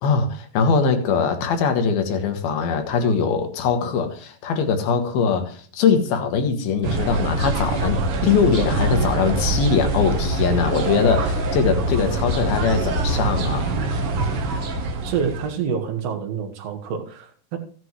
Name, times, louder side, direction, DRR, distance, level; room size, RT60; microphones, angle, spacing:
voice 1, 0.0-13.8, left 5 dB, 80° left, 6 dB, 3.2 m, -22 dB
sound 1, 6.8-15.5, right 2 dB, 75° right, 1.3 m, -24 dB
voice 2, 15.0-17.6, right 7 dB, 60° right, 5 dB, 1.9 m, -27 dB
16.0 x 7.8 x 3.1 m, 0.43 s
omnidirectional pair, 4.3 m